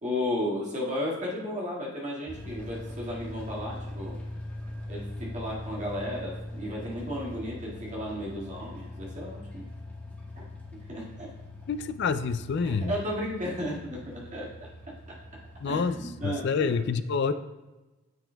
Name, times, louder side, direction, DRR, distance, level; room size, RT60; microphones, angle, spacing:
voice 1, 0.0-4.2 4.9-9.7 10.4-10.5 10.9-11.3 12.6-14.5 14.9-15.2 15.7-15.9 16.2-16.8 17.2-17.3, left 1 dB, 35° right, -5 dB, 1.9 m, -34 dB
sound 1, 2.3-16.4, left 1 dB, 5° left, 1.3 m, -41 dB
voice 2, 11.7-13.0 15.6-16.0 16.2-17.3, left 5 dB, 50° left, 12 dB, 0.3 m, -27 dB
8.9 x 7.2 x 2.3 m, 1.1 s
head